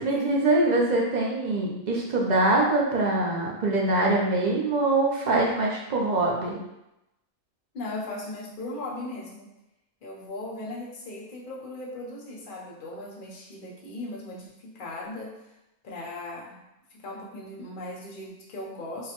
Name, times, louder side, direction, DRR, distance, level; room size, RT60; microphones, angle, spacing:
voice 1, 0.0-6.6, right 2 dB, 45° right, -2 dB, 0.6 m, -24 dB
voice 2, 7.7-9.5 10.0-15.4 15.8-16.6 17.0-19.1, left 2 dB, 45° left, -3 dB, 0.8 m, -38 dB
4.9 x 2.2 x 2.9 m, 0.91 s
omnidirectional pair, 1.4 m